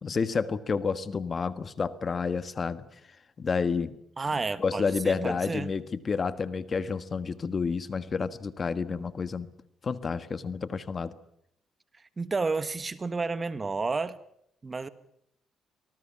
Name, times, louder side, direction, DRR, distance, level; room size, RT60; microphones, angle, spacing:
voice 1, 0.0-2.8 3.4-3.9 4.6-9.5 9.8-11.1, left 5 dB, 40° left, 13 dB, 1.5 m, -30 dB
voice 2, 4.2-5.7 12.2-14.2 14.6-14.9, right 4 dB, 30° right, 13 dB, 1.6 m, -31 dB
25.0 x 19.5 x 8.5 m, 0.73 s
cardioid pair, 90°, 0 cm